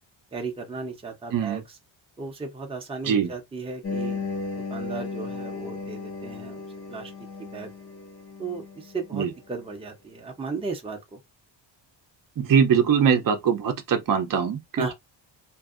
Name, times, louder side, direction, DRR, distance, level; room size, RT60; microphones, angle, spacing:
voice 1, 0.3-1.6 2.2-4.2 4.7-6.6 6.9-7.1 7.4-7.7 8.4-11.2 14.8-14.9, right 4 dB, 10° right, 0.7 m, -35 dB
voice 2, 1.3-1.6 3.0-3.3 9.1-9.3 12.4-14.9, right 7 dB, 45° right, 0.7 m, -22 dB
sound 1, 3.8-9.3, left 4 dB, 30° left, 0.6 m, -35 dB
2.7 x 2.5 x 2.4 m
cardioid pair, 120°, 46 cm